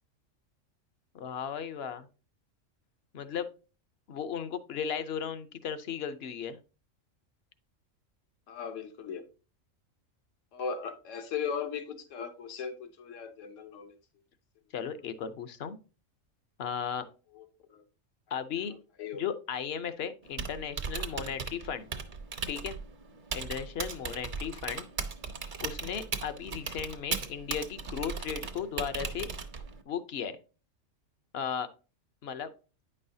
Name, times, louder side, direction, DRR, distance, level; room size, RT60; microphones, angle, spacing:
voice 1, 1.1-2.1 3.1-3.5 4.1-6.6 14.7-15.8 16.6-17.1 18.3-18.7 19.2-21.9 22.5-22.8 23.3-24.9 25.6-29.3 29.9-30.4 31.3-31.7 32.2-32.5, left 7 dB, 60° left, 0.9 m, -36 dB
voice 2, 8.5-9.2 10.5-13.9 17.3-17.8 19.0-19.2, left 6 dB, 75° left, 1.3 m, -38 dB
Typing, 20.2-29.8, right 5 dB, 45° right, 0.8 m, -38 dB
9.2 x 5.5 x 2.7 m
omnidirectional pair, 1.3 m